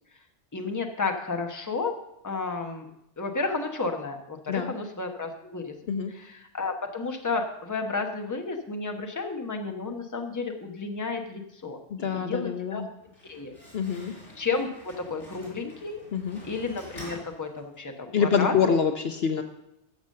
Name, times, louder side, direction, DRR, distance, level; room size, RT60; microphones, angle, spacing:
voice 1, 0.5-2.0 2.2-2.9 3.2-12.8 13.2-13.5 13.9-16.0 16.4-18.8, left 4 dB, 15° left, 4 dB, 1.0 m, -32 dB
voice 2, 11.9-12.9 13.7-14.1 16.1-16.4 18.1-19.4, left 6 dB, 60° left, 7 dB, 1.0 m, -26 dB
Slam, 12.9-18.0, equal, 75° left, 4.6 m, -48 dB
12.0 x 7.1 x 6.5 m, 0.82 s
omnidirectional pair, 1.2 m